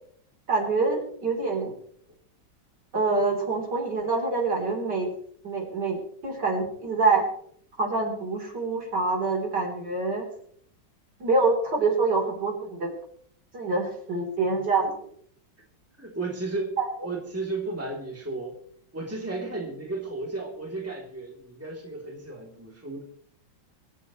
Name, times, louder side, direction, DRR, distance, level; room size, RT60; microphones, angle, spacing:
voice 1, 0.5-1.7 2.9-5.1 5.4-7.2 7.8-10.2 11.2-12.9 13.5-14.9 16.8-16.9, right 3 dB, 55° right, 0 dB, 4.6 m, -26 dB
voice 2, 16.0-16.8 17.0-18.6 18.9-23.0, right 3 dB, 5° right, -1 dB, 3.3 m, -34 dB
24.5 x 13.0 x 3.2 m, 0.63 s
omnidirectional pair, 2.2 m